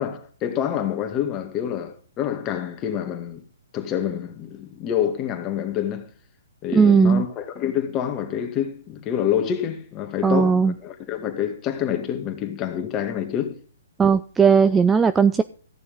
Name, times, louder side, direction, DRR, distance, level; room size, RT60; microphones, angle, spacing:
voice 1, 0.0-3.4 3.7-6.1 6.6-13.6, left 9 dB, 25° left, 2.1 m, -27 dB
voice 2, 6.7-7.2 10.2-10.7 14.0-15.4, right 6 dB, 10° right, 0.4 m, -17 dB
14.5 x 6.9 x 5.4 m
hypercardioid pair, 145°, 0 cm